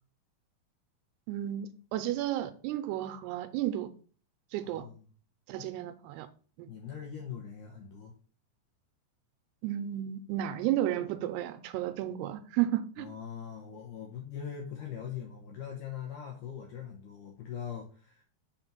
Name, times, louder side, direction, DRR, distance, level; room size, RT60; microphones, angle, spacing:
voice 1, 1.3-3.9 4.5-4.9 5.5-6.3 6.6-6.7 9.6-13.1, right 12 dB, 85° right, 2.5 m, -32 dB
voice 2, 4.6-5.0 5.6-5.9 6.7-8.1 13.0-18.2, left 8 dB, 75° left, 1.9 m, -42 dB
5.8 x 4.3 x 5.2 m
omnidirectional pair, 4.8 m